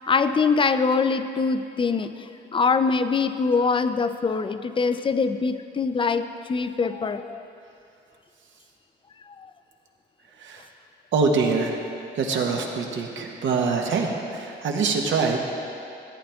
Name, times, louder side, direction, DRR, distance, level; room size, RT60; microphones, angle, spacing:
voice 1, 0.1-2.3 2.5-7.4 9.4-9.5, left 4 dB, 25° left, 10 dB, 0.5 m, -23 dB
voice 2, 11.1-11.8 12.1-15.4, right 4 dB, 70° right, 1 dB, 1.3 m, -24 dB
14.5 x 8.8 x 3.5 m, 2.6 s
cardioid pair, 90°, 20 cm